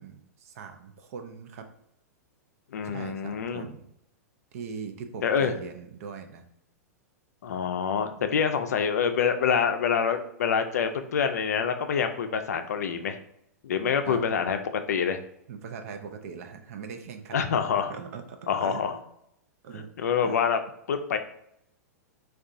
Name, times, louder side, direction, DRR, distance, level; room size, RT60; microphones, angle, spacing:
voice 1, 0.0-1.7 2.8-3.9 4.5-6.4 8.2-8.3 14.0-14.2 15.5-17.6 17.9-19.0 19.6-19.9 20.2-20.4, right 6 dB, 60° right, 7 dB, 0.5 m, -41 dB
voice 2, 2.7-3.7 5.2-5.5 7.4-13.2 13.6-15.2 17.3-17.9 18.5-18.9 19.7-20.6 20.9-21.2, left 7 dB, 75° left, 7 dB, 0.4 m, -26 dB
3.6 x 2.3 x 2.5 m, 0.75 s
hypercardioid pair, 110°, 9 cm